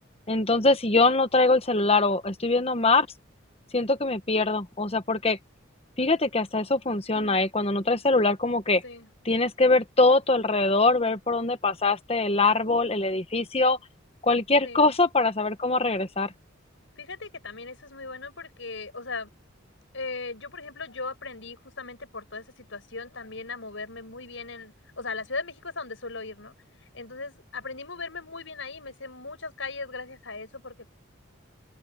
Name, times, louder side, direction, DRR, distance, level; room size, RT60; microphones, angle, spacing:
voice 1, 0.3-3.1 3.7-5.4 6.0-8.8 9.2-13.8 14.2-16.3, left 3 dB, 30° left, 1.3 m, -23 dB
voice 2, 7.1-7.5 8.8-9.1 14.6-14.9 17.0-19.3 19.9-26.5 26.9-30.9, left 3 dB, 65° left, 5.8 m, -38 dB
open air
head